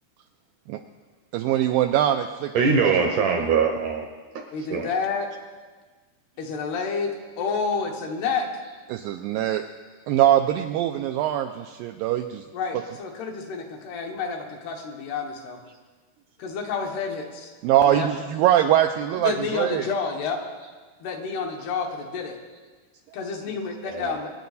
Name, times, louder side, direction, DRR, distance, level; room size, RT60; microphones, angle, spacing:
voice 1, 1.3-2.5 2.8-3.0 8.9-9.6 10.1-12.4 17.6-19.9, right 11 dB, 90° right, 6 dB, 2.0 m, -22 dB
voice 2, 2.5-4.1 4.4-4.5 4.7-4.9 23.9-24.2, right 5 dB, 70° right, 3 dB, 2.0 m, -22 dB
voice 3, 4.5-5.3 6.4-8.5 12.5-15.6 16.4-17.5 17.8-18.1 19.2-20.4 21.0-22.4 23.1-24.3, left 5 dB, 80° left, 2 dB, 3.4 m, -29 dB
24.0 x 9.4 x 4.1 m, 1.4 s
omnidirectional pair, 4.6 m